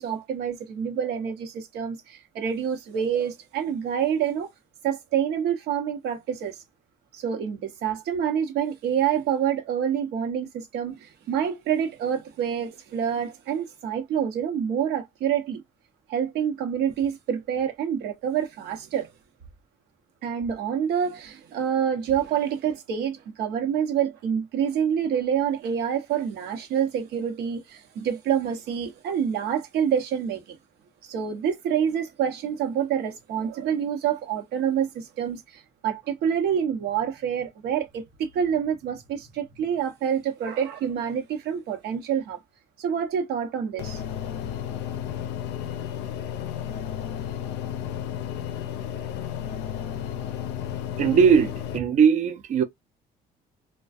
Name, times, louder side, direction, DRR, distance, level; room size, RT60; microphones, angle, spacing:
voice 1, 0.0-4.5 4.8-6.6 7.1-15.6 16.1-19.1 20.2-30.6 31.0-42.4 42.8-44.0, right 8 dB, 75° right, 0.8 m, -27 dB
sound 1, 43.8-51.8, left 9 dB, 85° left, 0.4 m, -33 dB
voice 2, 51.0-52.6, right 7 dB, 45° right, 0.5 m, -19 dB
2.4 x 2.2 x 2.4 m
cardioid pair, 110°, 17 cm